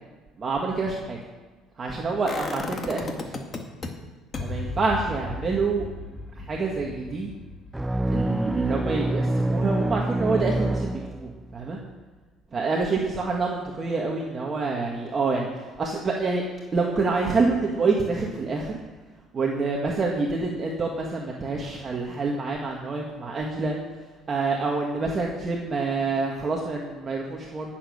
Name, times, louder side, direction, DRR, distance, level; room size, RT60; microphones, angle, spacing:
voice 1, 0.4-1.2 1.8-3.3 4.4-5.8 6.4-7.3 8.1-11.8 12.5-15.5 15.8-16.4 16.7-18.8 19.3-23.8 24.3-27.7, right 3 dB, 25° right, -1 dB, 1.9 m, -27 dB
sound 1, 2.3-3.9 4.3-10.2 10.5-10.6, left 3 dB, 30° left, 2.0 m, -36 dB
sound 2, 7.7-11.6, right 1 dB, 10° right, 0.3 m, -26 dB
18.5 x 7.6 x 6.6 m, 1.3 s
cardioid pair, 130°, 0 cm